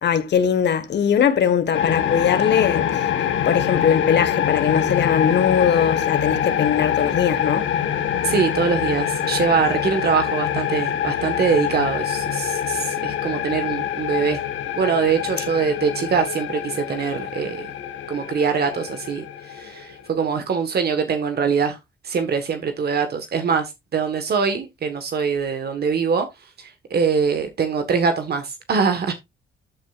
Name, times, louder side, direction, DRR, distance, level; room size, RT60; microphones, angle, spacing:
voice 1, 0.0-3.1 3.5-7.7, left 8 dB, 60° left, 1.5 m, -20 dB
sound 1, 1.7-20.1, left 9 dB, 75° left, 1.5 m, -25 dB
voice 2, 8.2-14.4 14.8-17.6 18.1-21.8 22.0-26.3 26.6-29.1, right 6 dB, 55° right, 1.4 m, -23 dB
13.0 x 6.3 x 2.5 m
cardioid pair, 90°, 20 cm